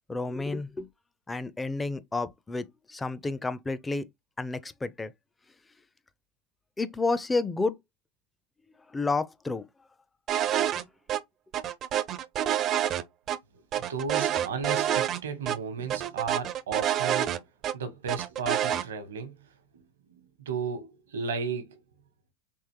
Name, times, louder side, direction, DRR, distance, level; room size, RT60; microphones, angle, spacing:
voice 1, 0.1-0.9 1.3-4.1 4.4-5.1 6.8-7.8 8.9-9.6 10.8-10.9, left 3 dB, 15° left, 0.5 m, -30 dB
sound 1, 10.3-10.8 11.1-11.2 11.5-13.4 13.7-15.2 15.5-15.6 15.9-17.7 18.1-18.8, right 11 dB, 40° right, 0.4 m, -27 dB
voice 2, 13.8-17.4 17.7-19.4 19.7-19.8 20.1-21.8, right 5 dB, 85° right, 1.0 m, -34 dB
3.6 x 3.0 x 3.0 m
hypercardioid pair, 100°, 0 cm